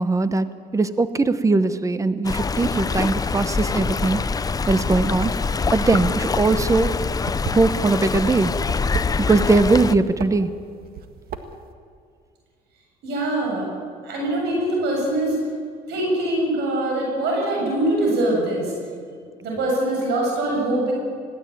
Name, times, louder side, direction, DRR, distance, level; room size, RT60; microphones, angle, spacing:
voice 1, 0.0-4.2 4.7-5.3 5.7-6.9 7.4-8.5 9.2-10.5, right 3 dB, 20° right, 12 dB, 1.0 m, -20 dB
Stream, 2.2-9.9, left 4 dB, 20° left, 0.7 m, -24 dB
sound 1, 5.9-6.2 6.5-8.1 8.6-9.6 9.9-10.3 10.8-11.7, right 7 dB, 65° right, 1.8 m, -31 dB
voice 2, 13.0-13.7 14.0-15.4 15.9-18.7 19.4-20.9, right 1 dB, 80° right, -2 dB, 7.6 m, -23 dB
21.5 x 16.5 x 8.8 m, 2.3 s
cardioid pair, 110°, 17 cm